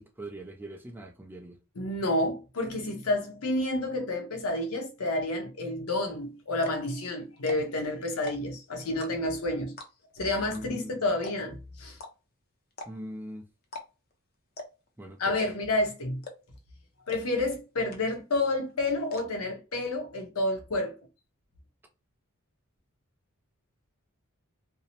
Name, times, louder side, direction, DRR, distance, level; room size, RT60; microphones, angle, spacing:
voice 1, 0.0-1.6 10.5-10.9 12.9-13.4 15.0-15.5, right 1 dB, 10° right, 0.4 m, -41 dB
voice 2, 1.8-9.7 10.2-12.0 15.2-16.2 17.1-21.0, left 2 dB, 70° left, 0.8 m, -30 dB
sound 1, 6.1-6.2 6.5-6.9 7.4-7.8 8.1-8.6 9.0-9.4 9.8-10.1 10.5-10.6 10.8-10.9 11.2-11.6 12.0-12.1 12.7-13.2 13.6-13.9 14.1-14.2 14.6-14.9 15.4-15.7 16.2-16.6 17.1-17.2 17.5-17.6 17.9-18.3 18.6-19.2, left 2 dB, 45° left, 0.6 m, -41 dB
2.6 x 2.0 x 2.8 m
head